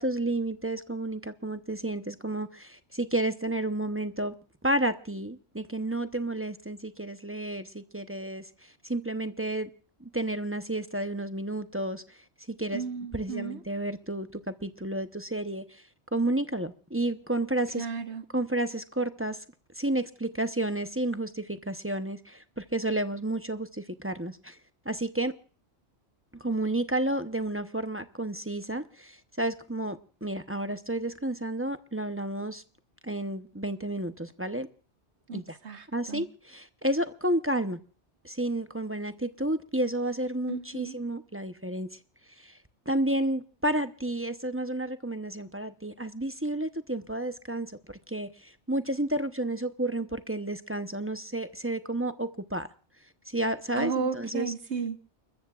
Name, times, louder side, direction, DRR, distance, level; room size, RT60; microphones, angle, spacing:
voice 1, 0.0-4.3 4.6-9.7 10.0-12.2 12.5-12.8 13.1-15.8 16.1-17.9 18.3-19.4 19.8-24.6 24.8-25.3 26.3-32.6 33.0-34.7 35.3-35.6 35.9-37.8 38.2-41.9 42.4-42.6 42.9-52.7 53.3-54.5, right 1 dB, 15° right, 0.7 m, -31 dB
voice 2, 12.7-13.6 17.8-18.2 35.3-36.2 40.5-40.9 53.8-55.0, right 6 dB, 75° right, 1.7 m, -34 dB
30.0 x 14.0 x 2.4 m
omnidirectional pair, 1.2 m